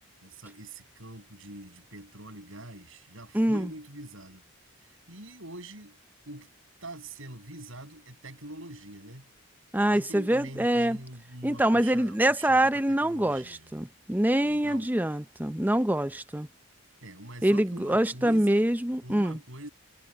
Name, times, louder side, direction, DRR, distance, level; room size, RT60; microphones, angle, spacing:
voice 1, 0.2-4.4 5.1-6.0 6.3-6.5 6.8-9.3 9.9-13.7 14.4-14.9 17.0-18.7 19.0-19.7, right 1 dB, 65° right, 7.6 m, -44 dB
voice 2, 3.3-3.7 9.7-11.0 11.4-16.5 17.4-19.4, right 1 dB, 10° right, 0.6 m, -25 dB
head